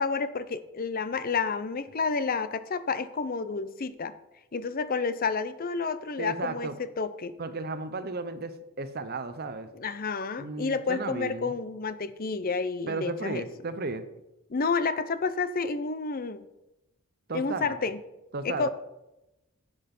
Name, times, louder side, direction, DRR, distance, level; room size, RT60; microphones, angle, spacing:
voice 1, 0.0-4.1 4.5-7.3 9.7-13.5 14.5-16.4 17.3-18.0 18.4-18.7, left 4 dB, 40° left, 13 dB, 0.6 m, -30 dB
voice 2, 6.2-6.8 7.4-9.7 10.4-11.5 12.9-14.1 17.3-17.8 18.3-18.7, right 3 dB, 45° right, 11 dB, 0.8 m, -34 dB
10.5 x 8.0 x 5.4 m, 0.95 s
head